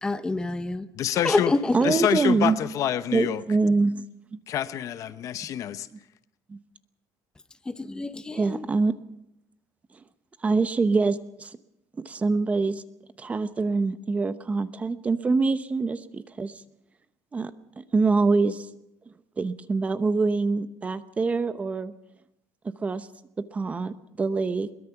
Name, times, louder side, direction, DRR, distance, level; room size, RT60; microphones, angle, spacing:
voice 1, 0.0-0.9 1.2-1.6 7.7-8.6, left 2 dB, 10° left, 0.9 m, -27 dB
voice 2, 0.9-1.5 1.8-3.4 4.5-5.9, left 11 dB, 45° left, 0.8 m, -27 dB
voice 3, 1.7-2.6 3.1-4.1 4.3-4.4 6.5-6.6 8.3-8.9 10.4-11.6 12.0-12.8 13.2-16.6 17.3-17.5 17.8-18.7 19.4-21.9 22.8-23.1 23.5-24.7, right 4 dB, 20° right, 0.8 m, -25 dB
22.5 x 21.0 x 5.9 m
cardioid pair, 160°, 8 cm